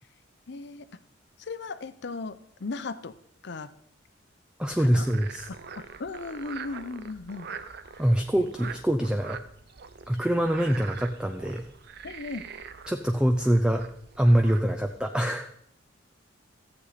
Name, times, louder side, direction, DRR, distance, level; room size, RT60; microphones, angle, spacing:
voice 1, 0.5-0.9 1.4-3.1 3.4-3.7 4.8-5.0 5.8-7.6 12.0-12.4, left 3 dB, 60° left, 12 dB, 0.6 m, -36 dB
voice 2, 4.6-5.5 8.0-9.4 10.1-11.6 12.9-13.9 14.2-15.5, equal, 5° right, 5 dB, 0.5 m, -24 dB
Frog, 4.7-15.0, right 6 dB, 55° right, 0.6 m, -44 dB
14.0 x 8.0 x 4.2 m, 0.71 s
head